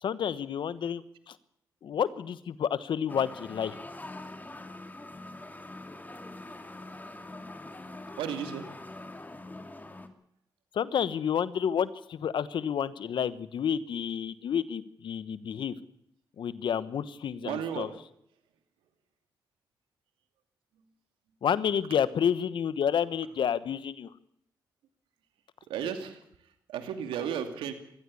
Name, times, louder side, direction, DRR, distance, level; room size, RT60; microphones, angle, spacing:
voice 1, 0.0-1.4 1.8-3.7 10.7-15.7 16.4-17.9 21.4-24.1, left 8 dB, 70° left, 16 dB, 1.2 m, -30 dB
sound 1, 3.1-10.1, left 2 dB, 20° left, 2.8 m, -44 dB
voice 2, 8.1-8.7 17.4-17.9 25.6-27.7, right 8 dB, 90° right, 7 dB, 2.5 m, -34 dB
21.5 x 15.5 x 8.5 m, 0.72 s
supercardioid pair, 50°, 9 cm